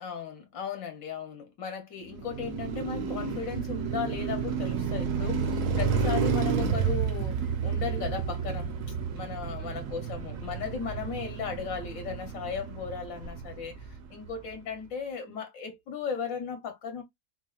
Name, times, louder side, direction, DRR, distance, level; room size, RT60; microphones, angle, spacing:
voice 1, 0.0-8.7 9.1-13.7 14.1-17.0, left 6 dB, 70° left, 1.2 m, -36 dB
Car passing by, 2.1-14.3, right 6 dB, 70° right, 1.0 m, -31 dB
4.2 x 2.1 x 2.3 m
omnidirectional pair, 1.5 m